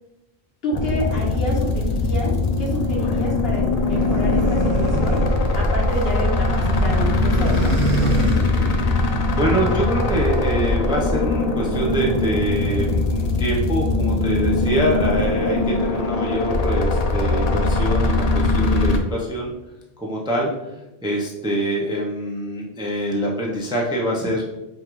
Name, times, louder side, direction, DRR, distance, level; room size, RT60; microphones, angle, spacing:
voice 1, 0.6-7.7, equal, 65° left, -3 dB, 1.4 m, -29 dB
sound 1, 0.7-19.0, left 2 dB, 50° left, 0.5 m, -21 dB
sound 2, 3.7-6.2 6.4-9.0, right 4 dB, 60° right, 0.7 m, -27 dB
voice 2, 9.1-19.5 20.0-20.5 21.0-24.4, right 1 dB, 5° right, -3 dB, 0.5 m, -25 dB
5.1 x 2.4 x 3.0 m, 0.94 s
omnidirectional pair, 1.1 m